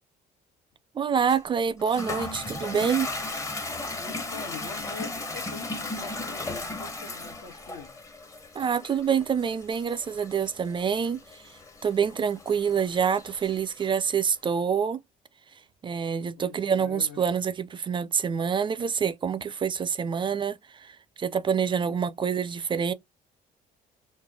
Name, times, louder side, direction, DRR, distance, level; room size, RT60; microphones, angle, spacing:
voice 1, 0.9-3.1 8.5-11.2 11.8-15.0 15.8-22.9, right 7 dB, 30° right, 0.4 m, -26 dB
Toilet flush, 1.3-14.1, left 2 dB, 20° left, 0.6 m, -37 dB
voice 2, 4.0-8.0 16.4-17.3, left 5 dB, 80° left, 1.2 m, -44 dB
3.2 x 2.2 x 3.5 m
cardioid pair, 110°, 17 cm